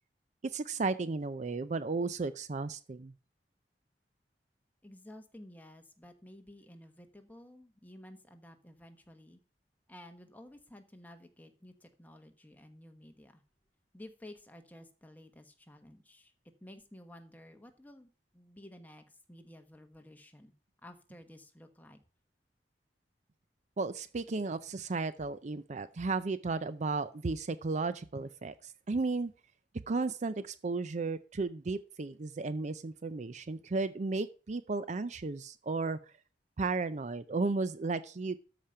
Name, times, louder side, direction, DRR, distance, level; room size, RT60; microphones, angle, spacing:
voice 1, 0.5-3.1 23.8-29.3 29.9-36.0 36.6-38.4, right 3 dB, 40° right, 13 dB, 0.5 m, -34 dB
voice 2, 4.8-9.4 9.9-13.4 13.9-16.3 16.6-20.5 20.8-22.0, left 1 dB, 10° left, 6 dB, 1.2 m, -53 dB
13.0 x 5.1 x 5.6 m, 0.37 s
head